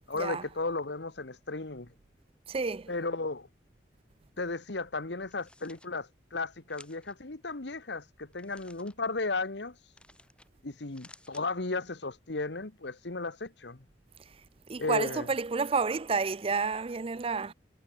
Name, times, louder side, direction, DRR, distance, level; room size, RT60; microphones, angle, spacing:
voice 1, 0.1-1.9 2.9-3.5 4.4-9.7 10.6-13.8 14.8-15.3, left 3 dB, 65° left, 1.4 m, -35 dB
voice 2, 2.5-2.9 14.7-17.5, right 4 dB, 30° right, 0.5 m, -30 dB
sound 1, 5.2-5.9 6.7-7.1 8.3-8.9 9.9-10.5 10.8-11.5, left 2 dB, 5° left, 2.0 m, -56 dB
head